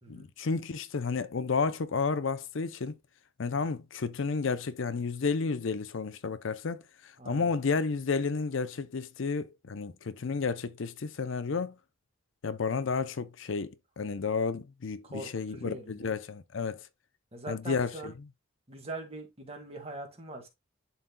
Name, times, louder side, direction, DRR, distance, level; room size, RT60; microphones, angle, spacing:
voice 1, 0.1-3.0 3.4-11.7 12.4-16.8 17.5-18.1, left 4 dB, 65° left, 0.5 m, -31 dB
voice 2, 7.2-7.5 15.0-16.1 17.3-18.1 18.7-20.5, right 2 dB, 30° right, 1.9 m, -42 dB
11.0 x 4.1 x 2.2 m
head